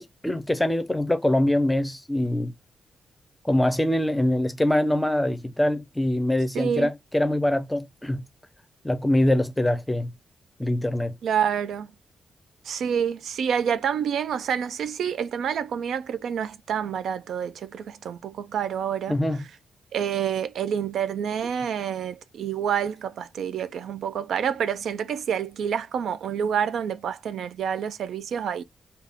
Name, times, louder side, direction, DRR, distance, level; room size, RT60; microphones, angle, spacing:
voice 1, 0.0-2.5 3.4-8.2 8.8-10.1 10.6-11.1 19.1-19.4, left 1 dB, 5° left, 0.5 m, -24 dB
voice 2, 6.5-6.9 11.2-11.9 12.7-19.1 19.9-28.6, right 8 dB, 85° right, 0.4 m, -28 dB
3.5 x 2.3 x 3.4 m
wide cardioid pair, 140°, 0 cm